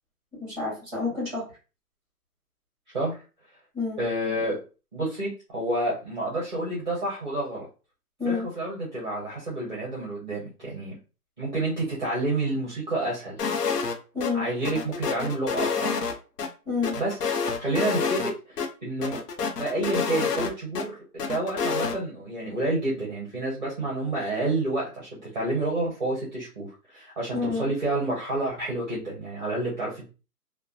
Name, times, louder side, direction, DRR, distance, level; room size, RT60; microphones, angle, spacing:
voice 1, 0.4-1.5 3.7-4.0 8.2-8.5 14.1-14.5 16.6-16.9 27.3-27.7, left 4 dB, 5° right, -5 dB, 1.2 m, -29 dB
voice 2, 4.0-4.6 4.9-7.6 8.2-11.0 11.4-13.4 14.3-15.9 17.0-19.2 19.6-30.0, right 2 dB, 30° right, -6 dB, 0.6 m, -29 dB
sound 1, 13.4-13.9 14.2-14.3 14.6-16.5 16.8-18.3 18.6-18.7 19.0-20.8 21.2-22.0, left 5 dB, 75° left, 0.7 m, -28 dB
2.5 x 2.2 x 2.3 m, 0.33 s
hypercardioid pair, 170°, 47 cm